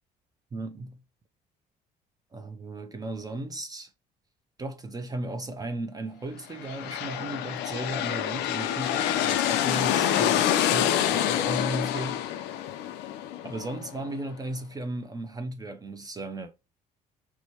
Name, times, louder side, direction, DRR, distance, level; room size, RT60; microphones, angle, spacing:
voice 1, 0.5-1.0 2.3-3.9 4.6-12.2 13.4-16.5, right 2 dB, 20° right, 0.5 m, -36 dB
sound 1, 6.5-14.2, left 11 dB, 85° left, 0.5 m, -27 dB
4.5 x 2.1 x 2.8 m
cardioid pair, 110°, 17 cm